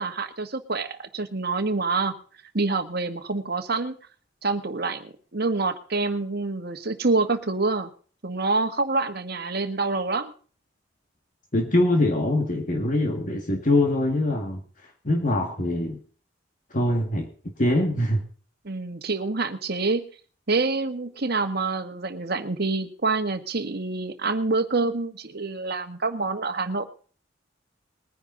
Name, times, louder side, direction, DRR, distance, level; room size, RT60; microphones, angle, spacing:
voice 1, 0.0-2.1 2.5-4.0 4.4-7.9 8.2-10.3 18.6-20.0 20.5-26.9, right 3 dB, 55° right, 8 dB, 1.5 m, -26 dB
voice 2, 11.5-14.6 15.0-16.0 16.7-17.3 17.6-18.2, left 1 dB, 45° left, 3 dB, 1.9 m, -23 dB
20.5 x 10.0 x 3.9 m, 0.41 s
head